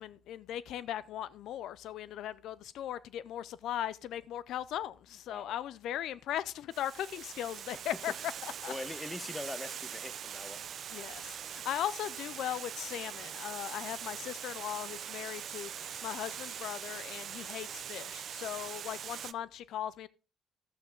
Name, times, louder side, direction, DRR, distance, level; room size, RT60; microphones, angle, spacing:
voice 1, 0.0-8.7 10.9-20.1, left 11 dB, 80° left, 0.4 m, -38 dB
Water, 6.7-19.3, right 9 dB, 60° right, 0.5 m, -42 dB
voice 2, 8.7-10.6, left 2 dB, 15° left, 0.7 m, -42 dB
12.0 x 8.4 x 3.7 m
cardioid pair, 90°, 0 cm